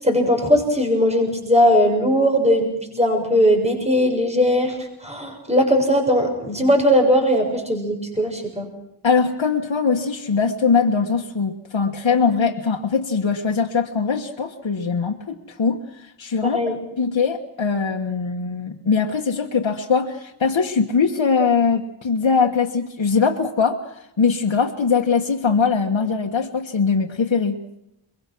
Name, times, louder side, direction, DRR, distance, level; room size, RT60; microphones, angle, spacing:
voice 1, 0.0-4.8 5.0-8.7 16.4-16.7, equal, 15° right, 3 dB, 6.7 m, -19 dB
voice 2, 9.0-27.5, left 5 dB, 75° left, 2 dB, 1.6 m, -21 dB
23.0 x 23.0 x 6.2 m, 0.81 s
wide cardioid pair, 55°, 46 cm